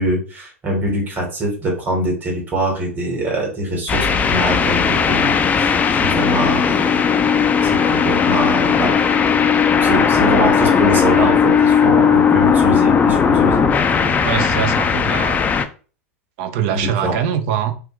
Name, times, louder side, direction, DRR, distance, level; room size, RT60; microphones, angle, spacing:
voice 1, 0.0-7.0 7.6-8.9 9.8-13.7 13.9-14.1 16.7-17.1, right 1 dB, 25° right, 1.6 m, -23 dB
sound 1, 3.9-15.6, left 6 dB, 20° left, 0.3 m, -16 dB
voice 2, 14.2-15.5 16.4-17.7, right 9 dB, 55° right, 0.6 m, -23 dB
2.9 x 2.3 x 3.1 m
hypercardioid pair, 95°, 8 cm